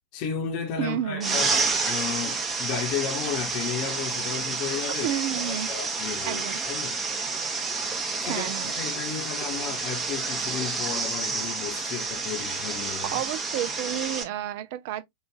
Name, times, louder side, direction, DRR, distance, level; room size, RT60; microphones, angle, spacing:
voice 1, 0.1-1.5 1.9-5.1 5.4-7.0 8.2-13.2, left 8 dB, 40° left, 0.9 m, -33 dB
voice 2, 0.8-1.4 5.0-5.7 6.2-6.6 8.2-8.7 13.1-15.0, right 11 dB, 50° right, 0.5 m, -31 dB
sound 1, 1.2-14.2, right 4 dB, 20° right, 0.9 m, -29 dB
4.9 x 2.4 x 2.3 m
figure-of-eight pair, 90°, 0 cm